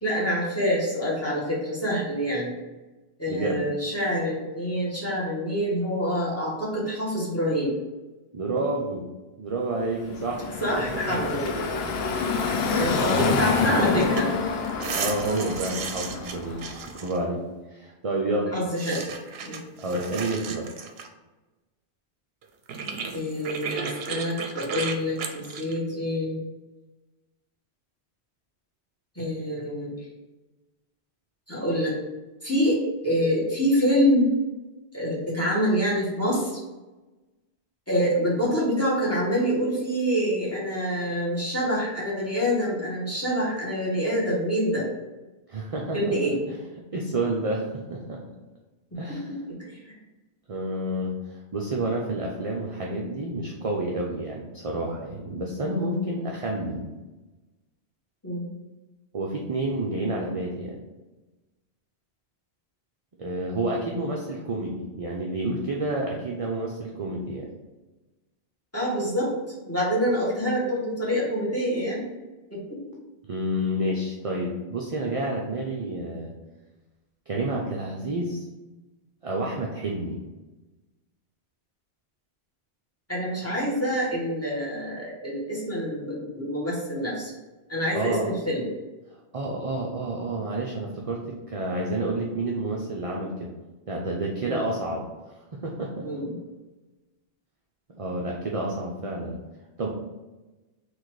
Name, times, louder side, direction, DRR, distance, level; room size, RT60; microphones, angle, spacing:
voice 1, 0.0-2.5 3.2-7.8 10.6-11.6 12.3-14.3 18.5-19.0 19.4-19.6 23.1-26.4 29.1-29.9 31.5-31.9 32.4-34.3 34.9-36.6 37.9-44.9 45.9-46.4 48.9-49.9 58.2-58.5 68.7-69.3 69.7-72.1 72.5-72.8 83.1-87.3 87.7-88.7 94.4-94.6 96.0-96.3, equal, 15° left, -6 dB, 1.4 m, -26 dB
voice 2, 3.3-3.6 8.3-9.0 9.4-10.5 10.8-11.3 13.0-13.3 15.0-16.6 16.9-17.4 17.7-18.6 18.9-19.1 19.8-20.7 45.5-46.6 46.9-48.2 49.0-49.3 50.5-56.9 59.1-60.8 63.2-67.5 73.3-76.3 77.3-78.4 79.2-80.2 87.9-88.3 89.3-93.5 93.9-95.0 95.6-96.1 97.9-99.4 99.8-99.9, right 1 dB, 45° right, -2 dB, 0.5 m, -29 dB
Car passing by / Traffic noise roadway noise, 10.0-16.9, left 4 dB, 70° left, 0.8 m, -27 dB
sound 1, 14.0-14.2 14.5-17.2 18.8-21.1 22.4-22.5 22.7-25.8, right 5 dB, 70° right, 0.8 m, -34 dB
4.0 x 2.7 x 4.6 m, 1.1 s
omnidirectional pair, 1.1 m